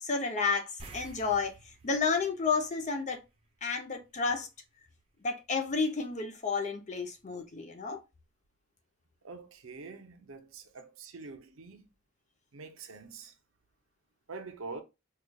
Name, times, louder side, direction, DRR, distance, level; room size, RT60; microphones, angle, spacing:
voice 1, 0.0-1.5 1.8-3.2 3.6-4.5 5.2-8.0, left 4 dB, 35° left, 0.6 m, -31 dB
sound 1, 0.8-3.6 3.9-4.1 6.9-7.0 7.4-7.5, right 3 dB, 30° right, 0.7 m, -51 dB
voice 2, 9.2-11.9 12.5-13.3 14.3-14.8, right 4 dB, 80° right, 0.6 m, -45 dB
4.8 x 2.3 x 2.3 m
head